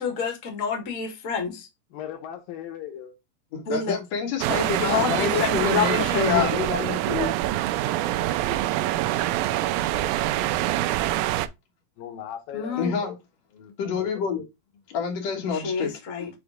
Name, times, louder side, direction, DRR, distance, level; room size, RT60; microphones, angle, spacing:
voice 1, 0.0-1.7 3.6-3.9 4.8-6.6 12.5-12.9 15.5-16.3, left 6 dB, 40° left, 1.2 m, -27 dB
voice 2, 1.9-3.2 12.0-13.2 13.5-14.5, left 10 dB, 75° left, 2.5 m, -38 dB
voice 3, 3.5-7.3 12.8-13.1 13.8-14.4 14.9-15.9, left 6 dB, 55° left, 2.3 m, -28 dB
sound 1, 4.4-11.5, right 14 dB, 80° right, 2.1 m, -25 dB
7.1 x 3.1 x 4.9 m
omnidirectional pair, 4.2 m